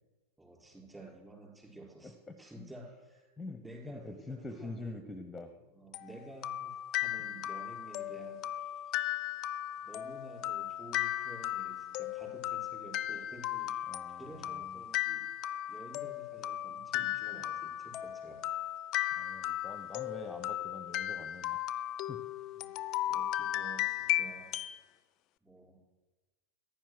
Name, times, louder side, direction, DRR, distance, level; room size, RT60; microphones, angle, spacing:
voice 1, 0.4-5.0 5.7-8.9 9.8-15.3 15.7-18.4 22.5-22.7 23.1-24.5 25.4-25.8, right 1 dB, 10° right, -2 dB, 4.7 m, -51 dB
voice 2, 2.3-2.7 3.4-5.5 13.9-14.8 19.2-21.7 22.1-22.2, left 2 dB, 10° left, 8 dB, 1.1 m, -45 dB
sound 1, 5.9-24.8, left 13 dB, 35° left, 0.6 m, -36 dB
15.0 x 10.5 x 6.4 m, 1.2 s
figure-of-eight pair, 90°, 0 cm